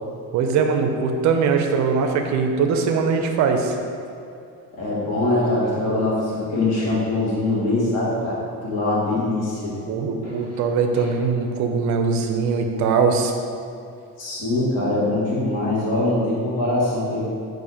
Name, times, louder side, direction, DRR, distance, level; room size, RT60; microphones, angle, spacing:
voice 1, 0.3-3.8 9.9-13.3, right 5 dB, 50° right, 4 dB, 0.4 m, -21 dB
voice 2, 4.7-9.7 10.2-10.3 10.9-11.1 14.2-17.3, left 2 dB, 45° left, -7 dB, 1.1 m, -23 dB
4.1 x 2.6 x 4.8 m, 2.6 s
cardioid pair, 160°, 37 cm